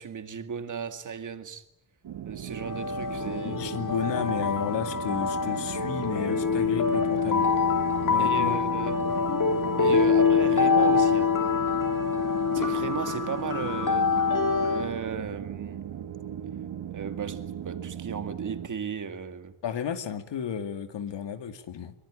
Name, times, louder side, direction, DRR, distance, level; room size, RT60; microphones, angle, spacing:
voice 1, 0.0-1.6 2.3-3.6 8.2-9.0 9.8-11.3 12.5-14.2 14.6-15.9 16.9-19.5, right 6 dB, 45° right, 2.2 m, -35 dB
sound 1, 2.0-18.7, right 10 dB, 85° right, 1.8 m, -37 dB
sound 2, 2.6-14.9, left 5 dB, 50° left, 3.5 m, -25 dB
voice 2, 3.4-7.5 8.1-8.6 19.6-21.9, left 8 dB, 85° left, 2.4 m, -32 dB
24.5 x 23.5 x 9.9 m
wide cardioid pair, 170°, 42 cm